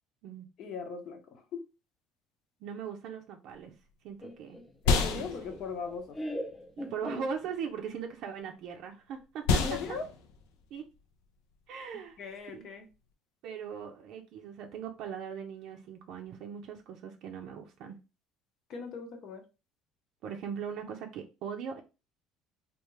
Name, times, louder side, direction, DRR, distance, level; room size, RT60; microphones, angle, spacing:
voice 1, 0.6-1.7 4.8-6.2 9.6-10.1 12.2-12.9 18.7-19.4, left 5 dB, 55° left, 6 dB, 0.9 m, -39 dB
voice 2, 2.6-3.8 4.0-4.6 5.1-5.5 6.8-9.5 10.7-10.8 11.7-12.2 12.5-12.7 13.4-18.0 20.2-21.8, right 7 dB, 65° right, 3 dB, 0.5 m, -40 dB
sound 1, 3.5-13.1, left 4 dB, 90° left, 0.6 m, -34 dB
Laughter, 4.2-7.9, equal, 15° left, 0.6 m, -41 dB
3.5 x 2.4 x 3.1 m, 0.29 s
cardioid pair, 115°, 0 cm